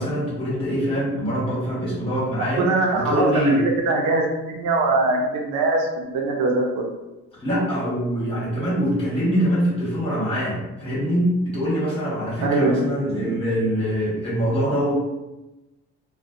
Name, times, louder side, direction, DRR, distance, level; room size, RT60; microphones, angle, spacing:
voice 1, 0.0-2.7 2.9-3.6 7.4-14.9, equal, 20° left, -8 dB, 1.4 m, -24 dB
voice 2, 2.6-3.5 3.9-6.9 12.4-12.9, right 2 dB, 80° right, 0 dB, 0.6 m, -22 dB
2.6 x 2.1 x 2.4 m, 1.0 s
cardioid pair, 90°, 30 cm